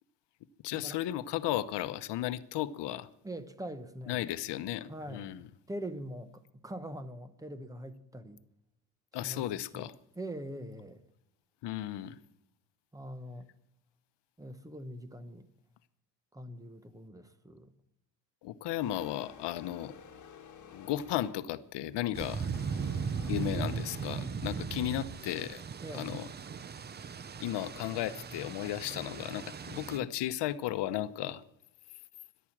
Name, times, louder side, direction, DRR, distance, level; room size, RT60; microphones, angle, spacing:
voice 1, 0.6-3.1 4.1-5.5 9.1-9.9 11.6-12.2 18.4-19.9 20.7-22.5 23.3-25.6 25.9-26.3 27.4-31.4, left 13 dB, 65° left, 0.9 m, -35 dB
voice 2, 3.2-4.2 4.9-5.4 5.7-8.4 9.2-9.5 9.7-9.9 10.2-11.0 12.9-13.5 14.4-15.5 16.3-17.7 25.8-26.1 30.0-30.1, right 1 dB, 10° right, 1.0 m, -43 dB
sound 1, 18.8-21.6 22.5-24.1, left 7 dB, 40° left, 1.9 m, -52 dB
sound 2, 22.1-30.0, right 6 dB, 25° right, 0.5 m, -38 dB
14.0 x 11.5 x 7.3 m
cardioid pair, 125°, 44 cm